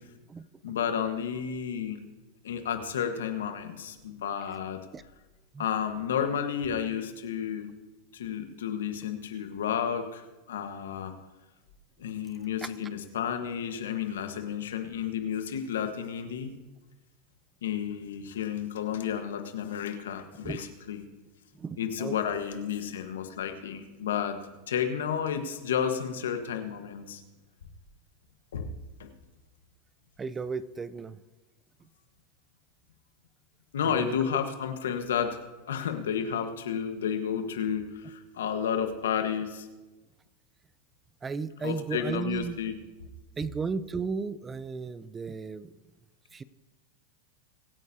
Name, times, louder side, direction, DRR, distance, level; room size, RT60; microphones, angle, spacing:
voice 1, 0.6-2.0 2.4-4.8 5.6-7.7 8.1-11.1 12.0-16.5 17.6-21.0 21.8-24.4 24.7-27.2 28.5-28.7 29.0-29.1 33.7-35.4 35.7-39.7 41.6-42.7, left 8 dB, 85° left, 6 dB, 1.4 m, -31 dB
voice 2, 21.6-22.4 30.2-31.2 33.8-34.1 41.2-42.6 43.4-45.7 46.3-46.4, right 5 dB, 20° right, 16 dB, 0.5 m, -34 dB
23.5 x 9.2 x 2.8 m, 1.1 s
hypercardioid pair, 110°, 0 cm